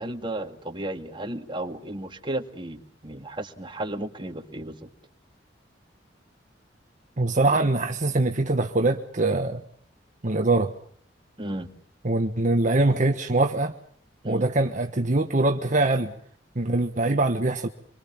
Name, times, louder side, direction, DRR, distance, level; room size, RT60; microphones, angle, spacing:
voice 1, 0.0-4.9 11.4-11.7 14.2-14.5, right 1 dB, 25° right, 5 dB, 2.2 m, -34 dB
voice 2, 7.2-9.6 10.2-10.7 12.0-13.7 14.2-16.1 16.5-17.7, right 2 dB, 45° right, 5 dB, 1.3 m, -23 dB
27.0 x 23.5 x 7.3 m, 0.62 s
head